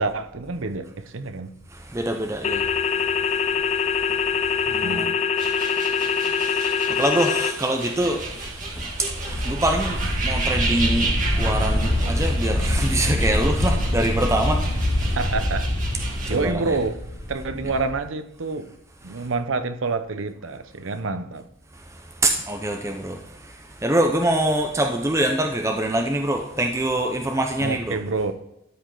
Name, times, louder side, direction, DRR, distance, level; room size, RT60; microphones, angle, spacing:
voice 1, 0.0-1.5 4.8-5.2 15.0-15.7 16.3-17.0 17.3-18.7 19.0-21.5 27.6-28.3, right 3 dB, 80° right, 0.7 m, -27 dB
voice 2, 1.7-5.1 5.4-15.2 16.1-16.8 19.1-19.3 21.9-28.0, right 1 dB, 15° right, 0.6 m, -26 dB
sound 1, 2.4-7.5, left 6 dB, 35° left, 0.4 m, -23 dB
sound 2, 5.4-16.3, right 3 dB, 40° right, 1.8 m, -32 dB
sound 3, 7.9-17.9, left 1 dB, 80° left, 2.1 m, -25 dB
12.5 x 5.1 x 3.9 m
head